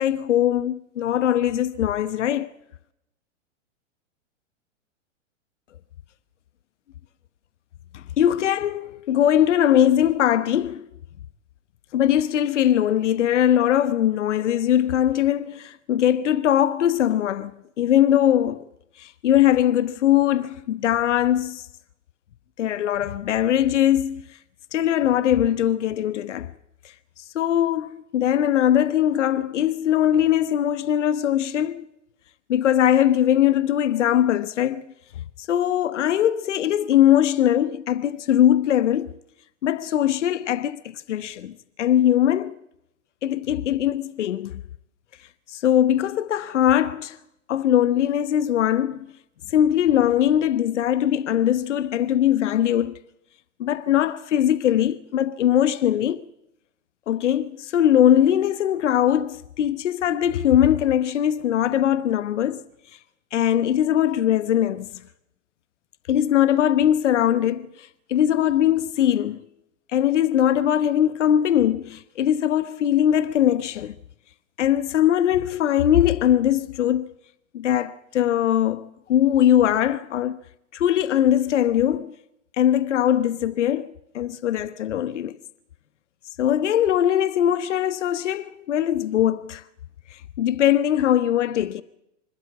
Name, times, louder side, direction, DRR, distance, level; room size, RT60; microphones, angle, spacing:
voice 1, 0.0-2.6 7.9-10.9 11.9-18.6 19.0-21.7 22.6-24.2 24.7-26.5 27.2-31.9 32.5-34.8 35.5-39.1 39.6-42.5 43.2-44.6 45.5-47.2 47.5-49.1 49.5-53.0 53.6-56.2 57.1-62.6 63.3-64.9 66.1-69.4 69.9-74.0 74.6-77.1 77.5-80.4 80.7-82.1 82.5-85.3 86.4-89.6 90.1-91.8, left 11 dB, 70° left, 1.1 m, -21 dB
26.0 x 12.5 x 8.4 m
hypercardioid pair, 110°, 37 cm